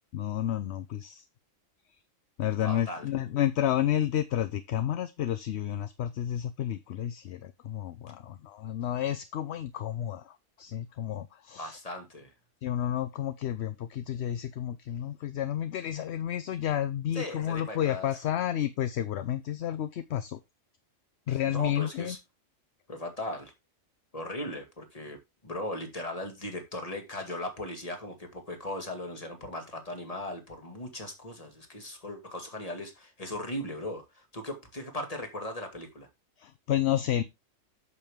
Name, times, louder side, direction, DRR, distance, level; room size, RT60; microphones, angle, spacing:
voice 1, 0.1-1.2 2.4-11.8 12.6-20.4 21.3-22.2 36.4-37.2, left 11 dB, 65° left, 0.8 m, -31 dB
voice 2, 2.6-3.1 11.6-12.3 17.1-18.2 21.3-22.2 22.9-23.5 24.1-36.1, left 1 dB, 25° left, 2.2 m, -38 dB
8.5 x 6.9 x 3.6 m
omnidirectional pair, 1.4 m